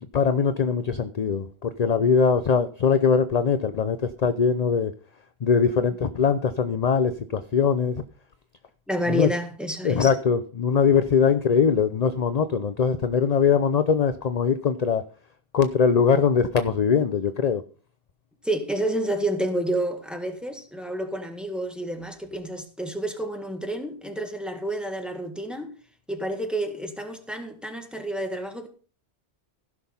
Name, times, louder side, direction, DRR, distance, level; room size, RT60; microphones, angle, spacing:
voice 1, 0.0-4.9 5.4-8.0 9.1-9.3 9.8-15.0 15.5-17.6, left 6 dB, 45° left, 0.7 m, -22 dB
voice 2, 8.9-10.1 18.4-25.7 26.1-28.7, right 1 dB, ahead, 1.8 m, -29 dB
15.5 x 6.2 x 5.6 m
omnidirectional pair, 1.1 m